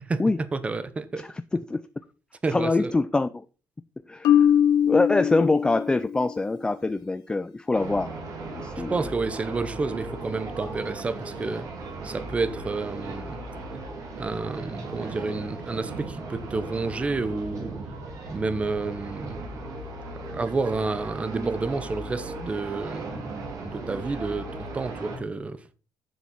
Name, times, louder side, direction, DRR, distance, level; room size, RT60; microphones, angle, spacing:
voice 1, 0.5-1.2 2.4-2.9 8.9-11.7 12.0-13.4 14.2-17.7 18.3-19.4 20.3-24.5 24.7-25.6, right 3 dB, 20° right, 0.8 m, -30 dB
voice 2, 1.2-1.8 2.5-3.4 4.1-4.5 4.8-8.2 8.5-9.0, left 3 dB, 10° left, 0.4 m, -24 dB
Marimba xylophone, 4.2-6.3, left 9 dB, 80° left, 0.7 m, -21 dB
sound 1, 7.7-25.2, right 2 dB, 60° right, 3.8 m, -37 dB
10.5 x 7.3 x 4.1 m
cardioid pair, 150°, 7 cm